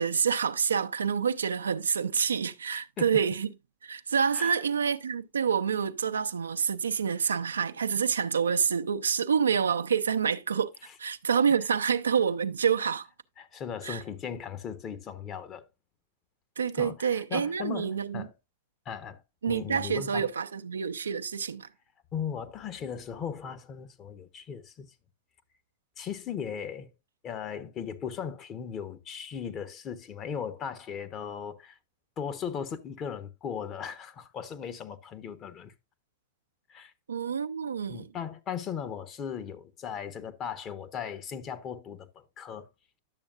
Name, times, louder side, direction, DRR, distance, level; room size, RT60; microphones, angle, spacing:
voice 1, 0.0-3.5 3.8-10.7 11.0-13.1 13.8-14.0 16.6-18.3 19.4-21.7 37.1-38.1, right 7 dB, 85° right, 0.5 m, -27 dB
voice 2, 2.7-3.2 4.3-4.6 10.9-11.0 13.4-15.7 16.7-18.3 18.8-20.3 22.1-24.9 26.0-26.9 27.2-31.8 32.2-35.7 36.7-36.9 37.9-42.7, left 7 dB, 35° left, 1.0 m, -37 dB
10.5 x 7.0 x 2.4 m
hypercardioid pair, 100°, 0 cm